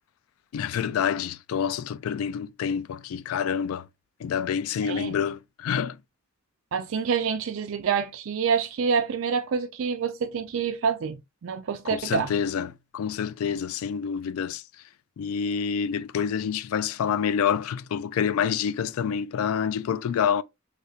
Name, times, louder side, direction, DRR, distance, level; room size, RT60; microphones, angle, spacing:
voice 1, 0.5-3.9 4.2-6.0 11.9-14.6 15.2-20.4, left 7 dB, 90° left, 0.3 m, -27 dB
voice 2, 4.8-5.1 6.7-11.2 11.4-12.3, right 6 dB, 65° right, 0.4 m, -27 dB
3.2 x 2.8 x 2.7 m
head